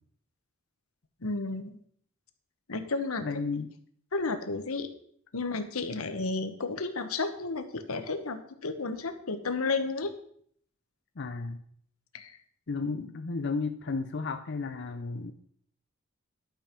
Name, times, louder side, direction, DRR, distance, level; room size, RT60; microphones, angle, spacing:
voice 1, 1.2-1.8 2.7-3.3 4.1-4.9 5.3-10.1 12.1-12.4, left 3 dB, 90° left, 9 dB, 1.1 m, -32 dB
voice 2, 3.2-3.7 11.2-11.6 12.7-15.3, left 4 dB, 55° left, 7 dB, 0.6 m, -33 dB
11.5 x 5.3 x 6.0 m, 0.63 s
head